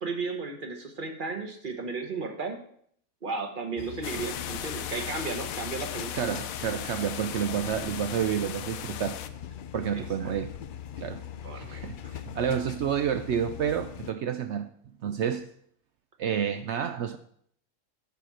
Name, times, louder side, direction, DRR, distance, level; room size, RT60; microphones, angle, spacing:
voice 1, 0.0-2.6 3.2-6.2 9.9-10.3 11.4-12.1, right 4 dB, 40° right, 1.3 m, -35 dB
sound 1, 3.8-14.1, left 9 dB, 65° left, 0.5 m, -41 dB
sound 2, 4.0-9.3, left 10 dB, 90° left, 1.0 m, -37 dB
voice 2, 6.1-9.2 9.7-10.5 11.0-11.2 11.5-14.7 15.0-15.5 16.2-17.2, right 8 dB, 65° right, 0.8 m, -29 dB
9.1 x 5.9 x 6.2 m
omnidirectional pair, 1.4 m